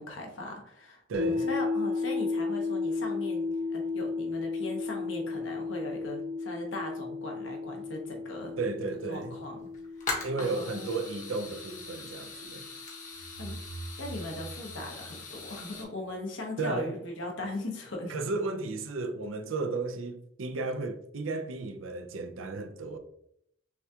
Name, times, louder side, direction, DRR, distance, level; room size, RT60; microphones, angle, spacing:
voice 1, 0.0-8.5 9.1-9.7 10.0-10.9 13.4-13.6 14.0-18.1, left 1 dB, 70° left, 1.0 m, -39 dB
sound 1, 1.1-13.2, left 4 dB, 50° right, 1.2 m, -34 dB
voice 2, 1.1-1.4 8.6-9.4 10.2-12.6 16.6-16.9 18.1-23.0, right 3 dB, 90° right, 0.5 m, -34 dB
sound 2, 8.6-8.7 9.0-9.2 9.7-15.8, left 3 dB, 40° left, 1.1 m, -41 dB
sound 3, 13.1-16.0, right 2 dB, 35° right, 1.0 m, -44 dB
6.1 x 2.4 x 2.7 m
head